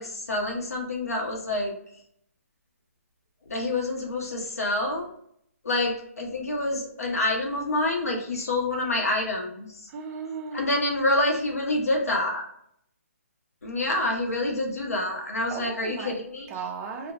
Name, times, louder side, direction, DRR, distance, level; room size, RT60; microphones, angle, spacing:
voice 1, 0.0-1.7 3.5-5.1 5.6-9.9 10.5-12.5 13.6-16.5, left 2 dB, 75° left, 0 dB, 0.8 m, -27 dB
voice 2, 9.9-10.7 15.5-16.2 16.5-17.1, right 5 dB, 20° right, 0 dB, 0.4 m, -35 dB
2.3 x 2.1 x 2.8 m, 0.70 s
figure-of-eight pair, 140°, 8 cm